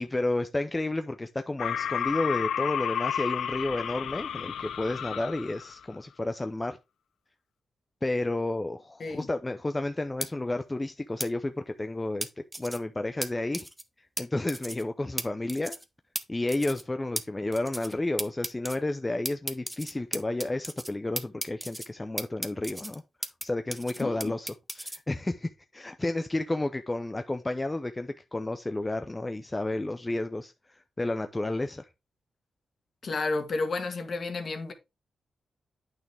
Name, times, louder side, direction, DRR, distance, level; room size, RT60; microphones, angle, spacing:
voice 1, 0.0-6.8 8.0-12.3 12.6-13.7 14.2-15.8 16.3-23.0 23.4-24.5 24.7-31.9, left 2 dB, 15° left, 0.6 m, -31 dB
sound 1, 1.6-5.8, left 9 dB, 85° left, 0.4 m, -32 dB
sound 2, 10.2-10.3 11.2-11.3 12.2-12.8 13.2-13.3 13.5-13.8 14.2-14.3 14.5-14.8 15.2-15.3 15.5-15.8 16.2-16.3 16.5-16.8 17.2-17.3 17.5-17.9 18.2-18.8 19.2-20.9 21.2-21.9 22.2-23.4 23.7-25.0, right 1 dB, 10° right, 0.9 m, -35 dB
voice 2, 24.0-24.4 33.0-34.7, left 3 dB, 50° left, 1.8 m, -31 dB
9.0 x 6.0 x 3.4 m
cardioid pair, 105°, 0 cm